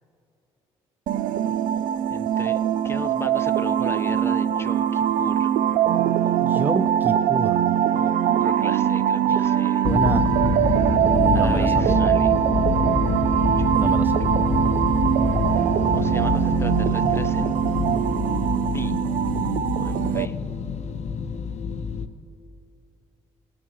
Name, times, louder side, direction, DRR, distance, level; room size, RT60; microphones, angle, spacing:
sound 1, 1.1-20.3, right 10 dB, 75° right, 0.5 m, -22 dB
voice 1, 2.1-5.5 5.9-6.6 7.9-9.9 11.3-12.3 13.6-13.8 15.6-17.6 18.7-18.9 19.8-20.3, left 2 dB, 20° left, 11 dB, 1.0 m, -37 dB
voice 2, 6.4-7.8 9.3-9.5 9.8-10.3 11.1-12.0 13.7-14.3, right 2 dB, 15° right, 15 dB, 0.4 m, -28 dB
sound 2, 9.8-22.1, left 5 dB, 55° left, 1.0 m, -26 dB
21.5 x 9.6 x 3.1 m, 2.7 s
hypercardioid pair, 55°, 14 cm